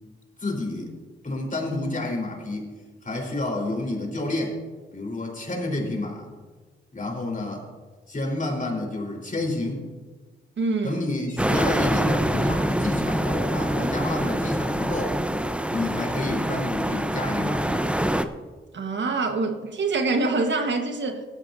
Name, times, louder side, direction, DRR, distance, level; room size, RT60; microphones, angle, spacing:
voice 1, 0.4-0.9 1.2-2.7 3.0-4.6 4.9-6.3 6.9-7.7 8.1-9.9 10.8-15.2 15.7-17.9, left 2 dB, 40° left, 0 dB, 4.2 m, -29 dB
voice 2, 10.6-11.0 18.7-21.2, right 3 dB, 65° right, 5 dB, 1.4 m, -25 dB
sound 1, 11.4-18.3, right 1 dB, 5° right, 0.8 m, -25 dB
16.5 x 13.5 x 2.7 m, 1.4 s
supercardioid pair, 45°, 21 cm